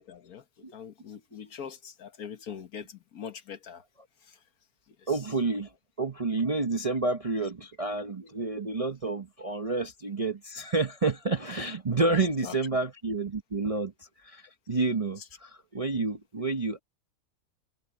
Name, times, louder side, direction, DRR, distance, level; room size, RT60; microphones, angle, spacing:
voice 1, 0.0-0.4 0.7-3.8 4.2-4.4 5.0-5.2 12.1-12.5 15.2-15.3, left 7 dB, 65° left, 1.7 m, -42 dB
voice 2, 5.1-5.7 6.0-13.9 14.2-16.8, right 3 dB, 30° right, 0.7 m, -29 dB
omnidirectional pair, 1.7 m